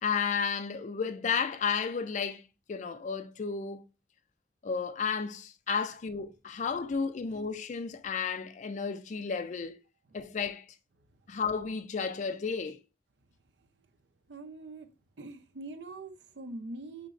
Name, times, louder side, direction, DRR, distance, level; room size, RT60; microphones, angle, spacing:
voice 1, 0.0-2.4 2.7-3.8 4.6-9.8 10.1-10.7 11.3-12.8, left 6 dB, 40° left, 0.4 m, -32 dB
voice 2, 14.3-14.9 15.2-17.1, right 2 dB, 75° right, 0.6 m, -43 dB
6.4 x 2.9 x 2.5 m
head